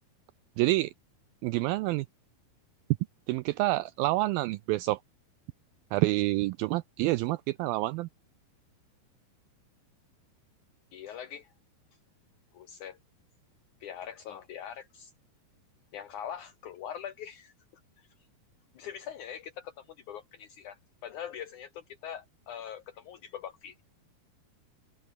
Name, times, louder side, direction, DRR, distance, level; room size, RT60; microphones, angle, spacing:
voice 1, 0.6-0.9 1.4-2.1 3.3-5.0 5.9-8.1, right 18 dB, 85° right, 2.1 m, -28 dB
voice 2, 10.9-11.5 12.5-13.0 13.8-15.1 15.9-17.5 18.0-18.1 18.7-23.8, left 9 dB, 75° left, 1.9 m, -42 dB
open air
omnidirectional pair, 4.7 m